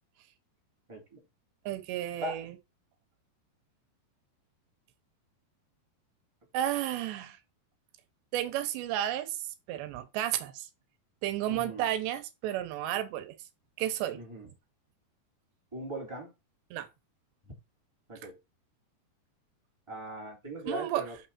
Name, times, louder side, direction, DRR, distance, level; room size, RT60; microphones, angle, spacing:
voice 1, 0.9-1.2 2.2-2.4 11.5-11.8 14.1-14.5 15.7-16.3 18.1-18.3 19.9-21.3, equal, 5° right, 2.9 m, -39 dB
voice 2, 1.7-2.6 6.5-7.4 8.3-9.4 9.7-10.7 11.2-13.4 13.8-14.2 16.7-16.9 20.6-21.0, right 12 dB, 85° right, 3.2 m, -32 dB
6.7 x 6.3 x 4.2 m
omnidirectional pair, 4.9 m